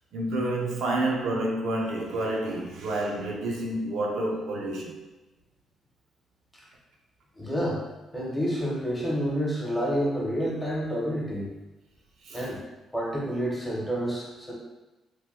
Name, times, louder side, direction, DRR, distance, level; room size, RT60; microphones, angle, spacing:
voice 1, 0.1-5.0 12.2-12.5, right 1 dB, 80° right, -1 dB, 0.6 m, -29 dB
voice 2, 7.4-7.8 8.1-11.5 12.3-12.6 12.9-14.5, equal, 10° left, -4 dB, 1.0 m, -29 dB
2.9 x 2.2 x 3.3 m, 1.1 s
cardioid pair, 90°, 0 cm